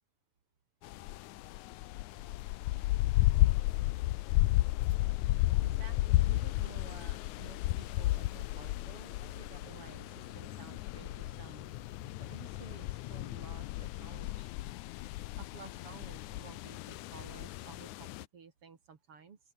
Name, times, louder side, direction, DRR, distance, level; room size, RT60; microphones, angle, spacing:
sound 1, 0.8-18.3, left 17 dB, 85° left, 1.7 m, -33 dB
sound 2, 5.6-12.9, left 5 dB, 35° left, 3.1 m, -54 dB
voice 1, 5.6-11.7 12.2-14.5 15.4-19.4, right 5 dB, 45° right, 2.7 m, -53 dB
open air
omnidirectional pair, 4.2 m